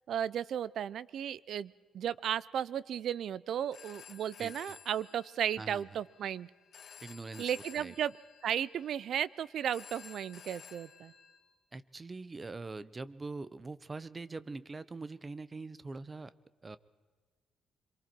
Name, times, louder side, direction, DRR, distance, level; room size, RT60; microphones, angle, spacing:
voice 1, 0.1-6.5 7.4-8.2 8.4-11.1, right 9 dB, 60° right, 19 dB, 0.5 m, -35 dB
Telephone, 3.5-11.4, left 7 dB, 55° left, 3.2 m, -54 dB
voice 2, 7.0-7.9 11.7-16.3 16.6-16.8, right 3 dB, 20° right, 16 dB, 0.7 m, -43 dB
26.0 x 23.0 x 4.5 m, 1.4 s
cardioid pair, 160°, 0 cm